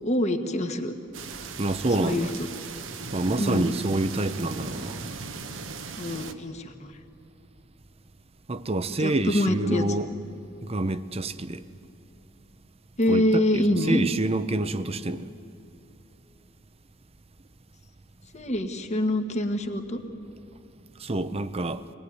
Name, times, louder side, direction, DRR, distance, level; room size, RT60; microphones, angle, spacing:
voice 1, 0.0-0.9 2.0-2.3 3.4-3.7 6.0-6.9 9.0-9.8 13.0-14.1 18.3-20.0, left 1 dB, 35° left, 1.6 m, -25 dB
sound 1, 1.1-6.3, right 4 dB, 70° right, 1.2 m, -38 dB
voice 2, 1.6-2.3 3.1-5.0 8.5-10.1 10.6-11.6 13.1-15.3 21.0-21.8, right 2 dB, 30° right, 0.8 m, -27 dB
24.5 x 19.5 x 9.6 m
head